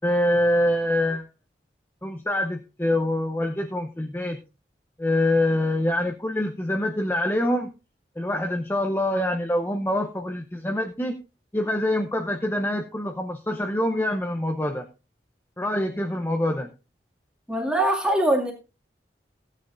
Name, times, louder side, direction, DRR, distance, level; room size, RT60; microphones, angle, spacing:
voice 1, 0.0-1.2 2.0-4.4 5.0-7.7 8.2-11.2 11.5-14.8 15.6-16.7, left 1 dB, 10° left, 0.7 m, -25 dB
voice 2, 17.5-18.5, right 1 dB, 5° right, 2.1 m, -22 dB
15.0 x 9.7 x 2.5 m
head